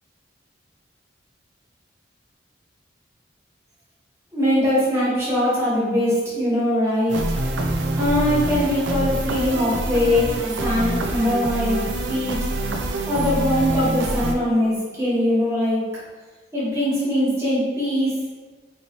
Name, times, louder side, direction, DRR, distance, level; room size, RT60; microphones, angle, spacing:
voice 1, 4.3-7.2 8.0-12.4 13.1-15.8 16.5-18.1, left 1 dB, 15° right, -8 dB, 1.2 m, -21 dB
sound 1, 7.1-14.3, right 2 dB, 80° right, 0.5 m, -25 dB
4.0 x 3.0 x 2.9 m, 1.4 s
head